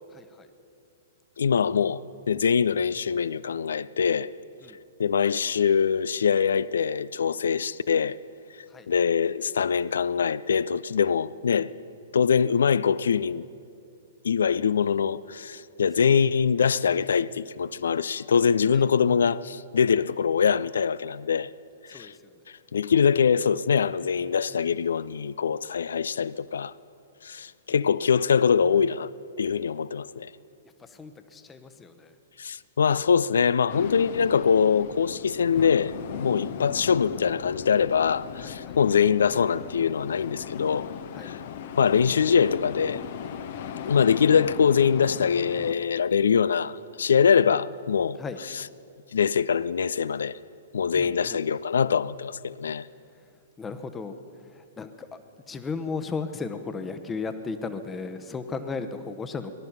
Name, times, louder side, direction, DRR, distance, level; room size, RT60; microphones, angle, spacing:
voice 1, 0.1-0.5 4.6-4.8 8.7-8.9 16.0-16.2 18.7-18.8 21.9-22.4 27.7-27.9 30.8-32.1 38.4-38.8 41.0-41.4 48.2-48.4 50.9-51.4 53.6-55.1 55.5-59.5, left 4 dB, 15° left, 0.9 m, -36 dB
voice 2, 1.4-4.3 5.0-8.2 8.5-11.7 12.1-13.5 14.2-21.5 21.8-22.2 22.5-26.8 27.2-29.1 29.4-30.3 32.4-40.9 41.2-41.4 41.8-43.0 43.9-48.6 49.1-50.4 50.7-52.9, left 6 dB, 65° left, 0.3 m, -23 dB
sound 1, 33.7-45.7, left 8 dB, 50° left, 0.8 m, -38 dB
19.0 x 12.0 x 5.7 m
figure-of-eight pair, 110°, 0 cm